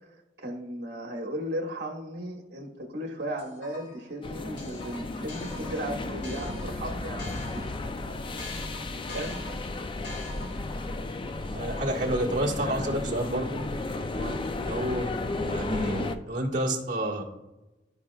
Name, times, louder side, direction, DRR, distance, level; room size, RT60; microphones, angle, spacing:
voice 1, 0.4-7.6 8.6-9.4 14.1-14.4, right 1 dB, 60° right, 0 dB, 1.4 m, -36 dB
sound 1, 3.4-4.1 4.6-7.9 8.4-10.8, left 2 dB, 70° left, 1.5 m, -45 dB
sound 2, 4.2-16.2, left 2 dB, 30° left, 0.4 m, -33 dB
voice 2, 11.5-13.6 14.6-17.2, right 1 dB, 45° right, -4 dB, 1.7 m, -30 dB
13.5 x 4.7 x 2.4 m, 1.0 s
head